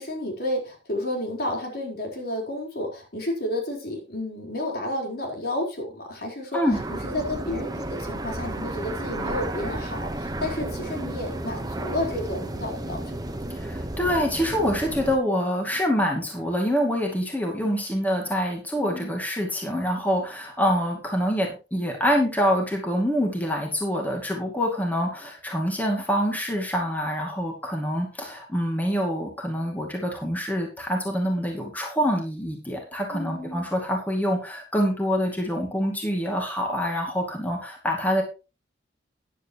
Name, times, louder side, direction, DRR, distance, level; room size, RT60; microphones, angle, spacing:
voice 1, 0.0-6.6 6.9-13.0 18.8-19.1 33.1-33.7, left 1 dB, 55° left, 1 dB, 4.1 m, -31 dB
sound 1, 6.7-15.2, right 1 dB, 20° right, 1.1 m, -33 dB
voice 2, 13.5-38.2, equal, 10° left, 0 dB, 2.3 m, -26 dB
13.5 x 10.5 x 3.0 m, 0.31 s
head